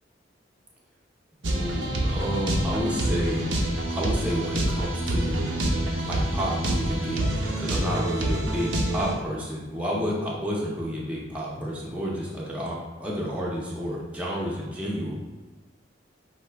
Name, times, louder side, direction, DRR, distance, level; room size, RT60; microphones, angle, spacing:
voice 1, 1.4-3.5 3.9-5.5 6.0-15.2, equal, 5° right, -5 dB, 0.7 m, -30 dB
sound 1, 1.4-9.1, right 1 dB, 85° right, 0.8 m, -27 dB
5.5 x 2.8 x 3.4 m, 1.3 s
head